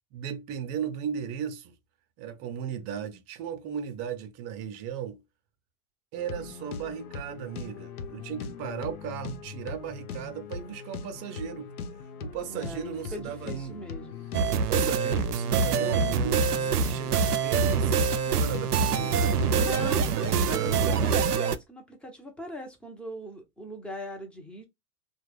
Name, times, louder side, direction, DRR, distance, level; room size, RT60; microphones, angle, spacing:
voice 1, 0.1-1.8 2.2-5.2 6.1-11.7 12.2-13.8 14.4-20.9, right 8 dB, 35° right, 0.6 m, -36 dB
sound 1, 6.2-21.1, left 5 dB, 70° left, 0.6 m, -40 dB
voice 2, 12.4-14.3 18.9-19.3 19.6-24.7, left 1 dB, ahead, 0.8 m, -40 dB
sound 2, 14.3-21.6, right 6 dB, 80° right, 0.5 m, -25 dB
3.2 x 2.3 x 3.3 m
figure-of-eight pair, 90°, 45 cm